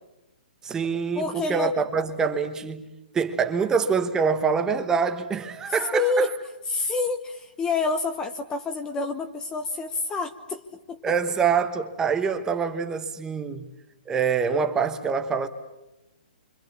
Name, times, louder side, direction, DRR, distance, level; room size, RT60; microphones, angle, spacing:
voice 1, 0.6-6.3 11.0-13.7 14.1-15.5, right 6 dB, 10° right, 1.2 m, -25 dB
voice 2, 1.1-1.7 5.9-6.3 6.7-10.6 10.9-11.0, left 3 dB, 15° left, 1.0 m, -27 dB
28.5 x 26.0 x 7.2 m
hypercardioid pair, 155°, 5 cm